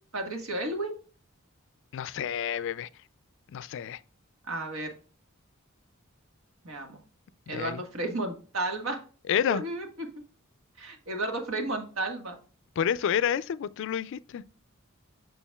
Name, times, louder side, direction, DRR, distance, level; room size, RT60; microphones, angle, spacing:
voice 1, 0.1-0.9 4.5-4.9 6.6-7.0 7.5-9.0 9.5-9.9 10.8-12.4, right 2 dB, 80° right, 1.5 m, -32 dB
voice 2, 1.9-2.9 3.5-4.0 7.5-7.8 9.3-9.6 12.8-14.4, left 8 dB, 65° left, 0.3 m, -29 dB
7.1 x 6.2 x 2.3 m
head